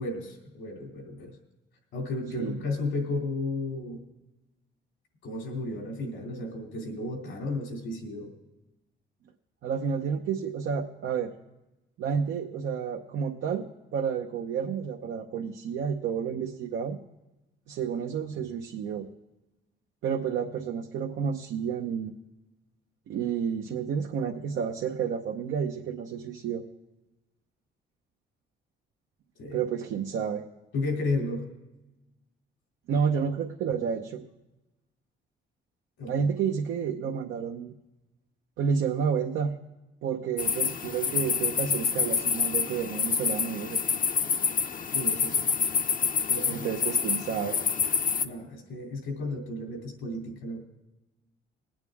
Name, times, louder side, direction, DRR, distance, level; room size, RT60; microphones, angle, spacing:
voice 1, 0.0-1.4 1.9-4.0 5.2-8.3 29.4-29.6 30.7-31.5 36.0-36.2 44.9-45.5 46.3-46.7 48.2-50.6, left 2 dB, 85° left, 1 dB, 2.9 m, -33 dB
voice 2, 9.6-11.3 12.0-13.7 13.9-17.0 17.7-19.1 20.0-22.1 23.1-26.6 29.5-30.4 32.9-34.3 36.1-37.7 38.6-39.6 40.0-43.8 46.5-47.6, right 7 dB, 80° right, 2 dB, 0.8 m, -30 dB
sound 1, 40.4-48.3, left 6 dB, 45° left, 0.7 m, -27 dB
20.5 x 8.9 x 3.6 m, 1.0 s
cardioid pair, 90°, 20 cm